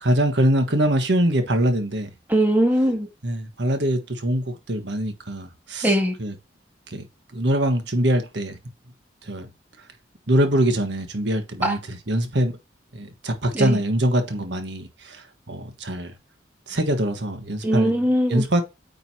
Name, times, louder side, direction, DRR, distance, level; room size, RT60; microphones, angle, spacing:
voice 1, 0.0-2.1 3.2-5.9 6.2-6.3 6.9-7.0 7.3-8.6 9.3-9.5 10.3-12.5 12.9-16.1 16.7-18.0 18.3-18.6, right 1 dB, 75° right, 1.4 m, -23 dB
voice 2, 2.3-3.1 5.8-6.1 11.6-11.7 13.5-13.8 17.6-18.4, equal, 10° right, 2.1 m, -20 dB
9.2 x 5.2 x 2.9 m
head